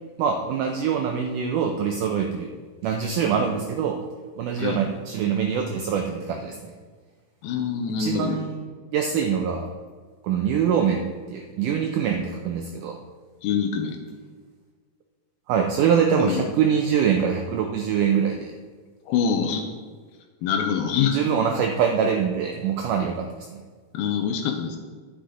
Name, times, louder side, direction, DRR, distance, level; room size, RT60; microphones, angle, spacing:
voice 1, 0.2-2.5 2.8-4.0 4.4-6.7 8.0-9.7 10.2-11.0 11.3-13.0 15.5-18.5 21.1-23.6, right 7 dB, 80° right, 3 dB, 1.9 m, -24 dB
voice 2, 7.4-8.4 13.4-14.0 16.2-16.4 19.1-19.7 20.4-21.2 23.9-24.8, left 7 dB, 85° left, 4 dB, 2.6 m, -25 dB
10.0 x 10.0 x 3.8 m, 1.5 s
omnidirectional pair, 4.3 m